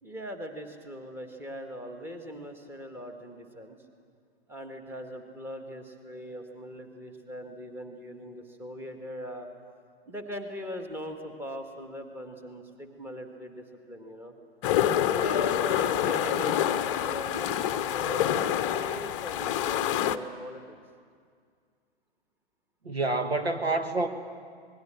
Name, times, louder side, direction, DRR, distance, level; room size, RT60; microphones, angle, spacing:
voice 1, 0.0-3.8 4.5-9.5 10.1-14.3 15.1-20.8, equal, 5° right, 5 dB, 1.6 m, -40 dB
sound 1, 14.6-20.2, left 10 dB, 30° left, 0.8 m, -27 dB
voice 2, 22.8-24.1, right 2 dB, 75° right, 6 dB, 1.9 m, -27 dB
26.5 x 20.5 x 7.6 m, 2.1 s
figure-of-eight pair, 115°, 31 cm